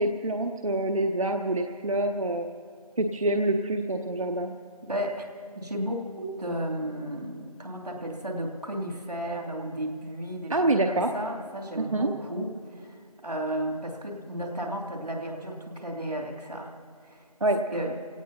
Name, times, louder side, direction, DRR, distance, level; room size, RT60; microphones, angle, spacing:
voice 1, 0.0-2.5 3.0-4.5 10.5-11.1 11.8-12.1 17.4-17.6, right 1 dB, 60° right, 4 dB, 0.8 m, -26 dB
voice 2, 4.8-5.3 5.5-10.5 10.8-16.7 17.0-17.2 17.7-18.0, right 1 dB, 90° right, 0 dB, 2.9 m, -33 dB
26.5 x 17.5 x 2.9 m, 2.2 s
figure-of-eight pair, 175°, 20 cm